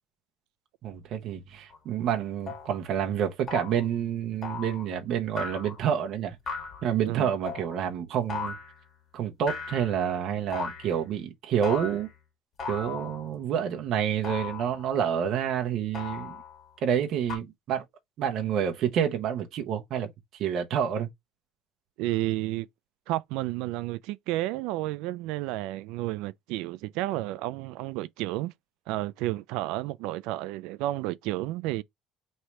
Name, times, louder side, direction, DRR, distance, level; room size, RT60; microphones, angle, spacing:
voice 1, 0.8-6.6 6.8-8.6 9.1-12.1 12.7-16.4 16.8-17.8 18.2-20.1 20.3-21.1, right 8 dB, 55° right, 0.8 m, -28 dB
sound 1, 1.7-1.8 2.5-2.7 3.5-3.8 4.4-4.8 5.4-5.8 6.5-6.8 7.5-7.7 8.3-8.8 9.5-10.1 10.5-11.0 11.6-12.1 12.6-13.3 14.2-14.9 15.9-16.6 17.3-17.4, left 5 dB, 35° left, 1.7 m, -37 dB
voice 2, 22.0-22.7 23.1-28.5 28.9-31.8, right 16 dB, 80° right, 0.3 m, -31 dB
3.2 x 2.7 x 4.5 m
cardioid pair, 140°, 0 cm